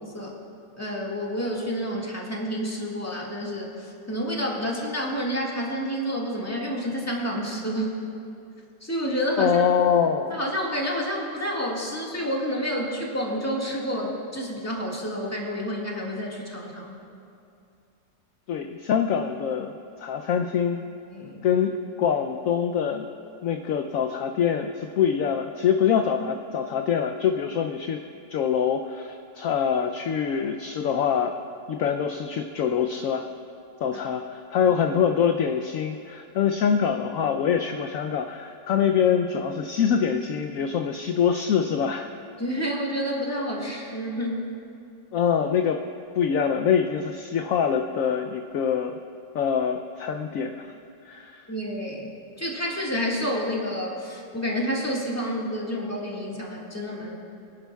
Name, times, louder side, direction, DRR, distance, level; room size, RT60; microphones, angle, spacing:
voice 1, 0.0-0.4 0.8-7.9 8.8-9.6 10.3-17.0 21.1-21.5 42.4-44.5 51.5-57.1, equal, 10° left, -3 dB, 1.6 m, -29 dB
voice 2, 9.4-10.4 18.5-19.7 20.0-20.8 21.4-21.7 22.0-23.1 23.4-28.0 28.3-31.3 31.7-33.3 33.8-42.1 45.1-45.8 46.1-49.0 49.3-50.7 51.1-51.5, left 7 dB, 70° left, 6 dB, 0.8 m, -24 dB
24.0 x 11.5 x 2.3 m, 2.5 s
omnidirectional pair, 1.9 m